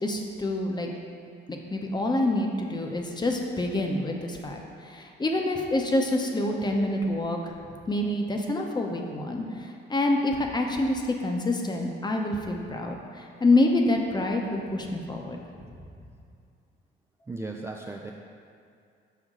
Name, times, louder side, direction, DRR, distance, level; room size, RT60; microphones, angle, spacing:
voice 1, 0.0-0.9 1.5-7.4 7.9-9.4 9.9-15.4, left 2 dB, 20° left, 2 dB, 0.7 m, -27 dB
voice 2, 17.3-18.1, right 3 dB, 15° right, 0 dB, 0.3 m, -36 dB
6.3 x 5.1 x 3.8 m, 2.4 s
cardioid pair, 90°, 20 cm